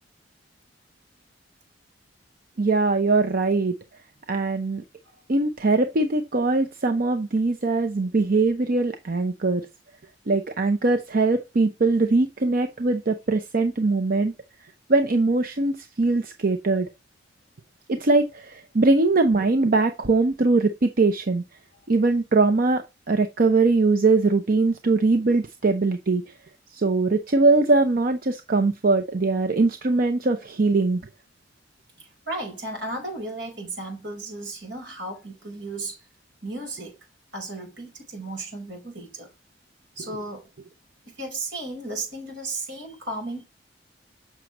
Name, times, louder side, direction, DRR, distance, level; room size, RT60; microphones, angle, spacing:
voice 1, 2.6-3.8 4.3-4.8 5.3-9.6 10.3-14.3 14.9-16.9 17.9-21.4 21.9-26.2 26.7-31.0, right 3 dB, 55° right, 0.7 m, -21 dB
voice 2, 32.0-36.0 36.4-36.9 37.3-39.3 40.0-40.5 41.1-43.4, right 2 dB, 80° right, 4.8 m, -34 dB
7.4 x 6.1 x 3.1 m
head